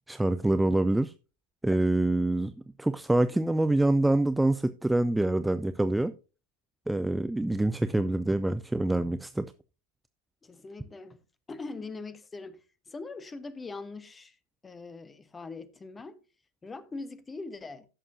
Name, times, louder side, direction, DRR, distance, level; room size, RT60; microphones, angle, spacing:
voice 1, 0.1-1.1 1.6-6.1 6.9-9.5, right 1 dB, 5° right, 0.4 m, -26 dB
voice 2, 10.4-11.2 11.5-14.4 14.6-16.2 16.6-17.9, left 3 dB, 15° left, 1.0 m, -42 dB
16.0 x 6.5 x 2.6 m
figure-of-eight pair, 90°, 0 cm